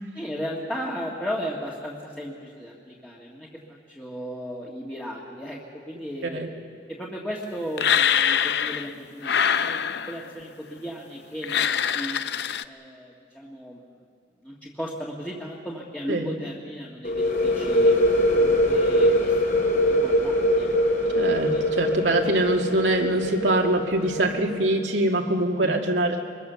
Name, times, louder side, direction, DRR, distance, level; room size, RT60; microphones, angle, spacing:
voice 1, 0.1-6.5 6.9-9.8 10.1-12.2 12.6-13.8 14.4-17.9 18.3-19.4 19.9-21.2 21.5-21.6 25.6-25.8, equal, 10° left, -5 dB, 1.8 m, -36 dB
sound 1, 7.8-8.9 9.2-10.3 11.4-12.6, left 8 dB, 65° left, 0.6 m, -24 dB
sound 2, 17.0-24.7, equal, 50° left, 3.1 m, -22 dB
voice 2, 21.1-26.2, right 1 dB, 90° right, 1 dB, 2.3 m, -23 dB
24.0 x 21.5 x 6.9 m, 2.2 s
head